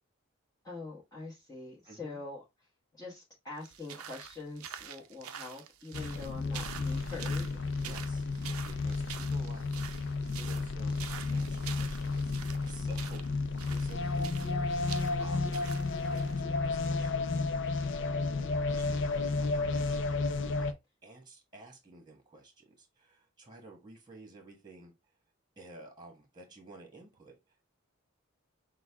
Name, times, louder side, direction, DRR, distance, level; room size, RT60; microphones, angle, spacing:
voice 1, 0.6-2.4 2.9-7.6, left 3 dB, 15° left, 1.2 m, -44 dB
voice 2, 1.8-2.2 7.8-15.6 16.0-17.3 17.6-20.1 20.6-24.9 25.6-27.6, right 2 dB, 20° right, 1.3 m, -53 dB
sound 1, 3.6-16.4, right 9 dB, 80° right, 0.6 m, -47 dB
sound 2, 5.9-20.7, left 3 dB, 55° left, 0.5 m, -32 dB
6.1 x 2.2 x 3.4 m
head